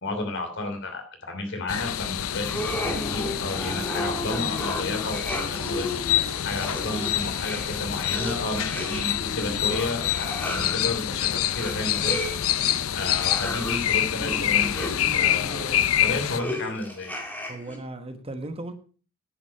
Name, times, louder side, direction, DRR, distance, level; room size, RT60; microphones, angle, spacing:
voice 1, 0.0-5.9 6.4-12.2 12.9-17.2, left 2 dB, 60° left, 4 dB, 3.0 m, -32 dB
sound 1, 1.7-16.4, left 11 dB, 85° left, 0.6 m, -27 dB
sound 2, 2.4-17.8, left 1 dB, 10° left, 2.4 m, -34 dB
voice 2, 17.5-18.7, right 2 dB, 30° right, 8 dB, 1.1 m, -37 dB
10.0 x 8.3 x 5.6 m, 0.39 s
head